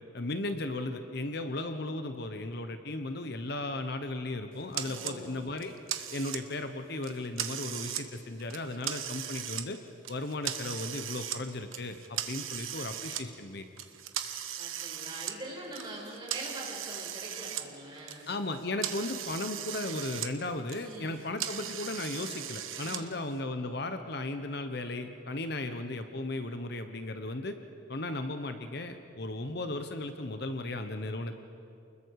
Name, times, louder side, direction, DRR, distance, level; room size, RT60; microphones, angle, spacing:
voice 1, 0.1-5.7 6.1-9.8 10.1-13.7 18.3-27.5 27.9-31.4, left 2 dB, 55° left, 7 dB, 1.0 m, -36 dB
sound 1, 4.7-5.2 5.6-6.6 7.0-8.0 8.4-9.6 10.0-11.4 11.7-13.2 13.8-17.7 17.9-20.3 20.6-23.0, right 10 dB, 90° right, 1.2 m, -38 dB
voice 2, 4.8-5.3 14.6-18.3 20.8-21.3 22.8-23.2, right 1 dB, 25° right, -3 dB, 5.5 m, -43 dB
29.0 x 21.5 x 4.8 m, 2.6 s
head